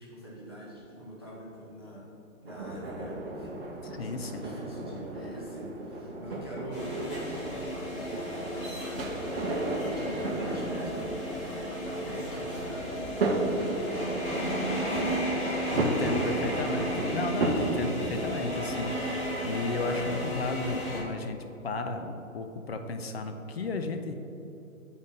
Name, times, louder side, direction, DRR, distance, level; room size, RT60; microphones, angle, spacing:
voice 1, 0.0-2.1 2.4-3.7 4.0-9.6 9.9-11.2 11.5-15.5 15.9-16.7, equal, 20° right, -5 dB, 0.4 m, -44 dB
sound 1, 2.5-18.3, right 2 dB, 45° right, 0.8 m, -34 dB
voice 2, 4.0-4.6 15.7-21.4 21.6-24.2, left 3 dB, 50° left, 6 dB, 0.5 m, -33 dB
sound 2, 6.7-21.0, equal, 15° left, 1.1 m, -33 dB
8.5 x 4.0 x 3.8 m, 2.9 s
hypercardioid pair, 165°, 42 cm